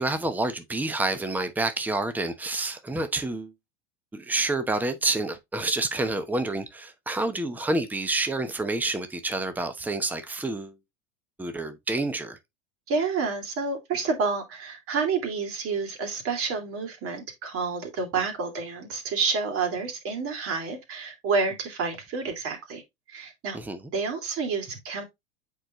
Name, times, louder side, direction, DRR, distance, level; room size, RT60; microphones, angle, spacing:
voice 1, 0.0-3.5 4.1-10.8 11.4-12.4 23.5-23.8, right 2 dB, 5° right, 0.9 m, -28 dB
voice 2, 12.9-22.8 23.1-23.6 23.9-25.0, right 4 dB, 45° right, 2.6 m, -29 dB
7.8 x 4.4 x 3.0 m
hypercardioid pair, 90°, 33 cm